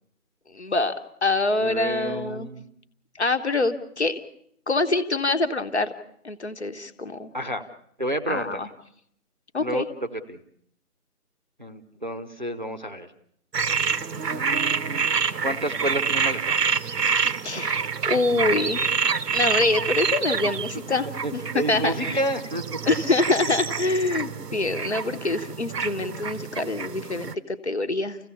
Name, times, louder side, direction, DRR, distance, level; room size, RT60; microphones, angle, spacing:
voice 1, 0.5-2.5 3.2-4.2 4.7-5.9 6.2-7.3 8.3-8.7 9.5-9.9 17.4-18.9 19.3-22.2 22.8-28.2, left 2 dB, 45° left, 9 dB, 1.3 m, -25 dB
voice 2, 1.6-2.6 7.3-7.6 8.0-8.6 9.6-9.9 10.3-10.4 11.6-13.1 14.1-15.1 15.4-16.7 17.2-17.6 21.2-22.6, right 1 dB, 30° right, 6 dB, 0.8 m, -30 dB
sound 1, 13.5-27.3, right 6 dB, 90° right, 1.0 m, -27 dB
29.5 x 15.5 x 7.0 m, 0.72 s
figure-of-eight pair, 170°, 47 cm